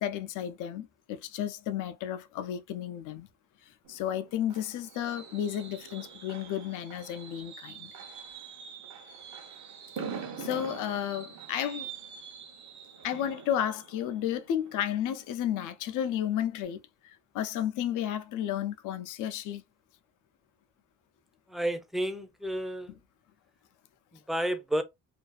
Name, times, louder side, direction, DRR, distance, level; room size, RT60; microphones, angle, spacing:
voice 1, 0.0-3.3 3.9-7.9 10.4-11.9 13.0-19.6, left 10 dB, 85° left, 0.5 m, -32 dB
Fireworks, 3.8-15.5 15.9-16.2 16.5-16.6, right 6 dB, 70° right, 0.8 m, -44 dB
voice 2, 21.5-22.9 24.3-24.8, right 1 dB, ahead, 0.4 m, -31 dB
2.5 x 2.3 x 2.2 m
cardioid pair, 90°, 30 cm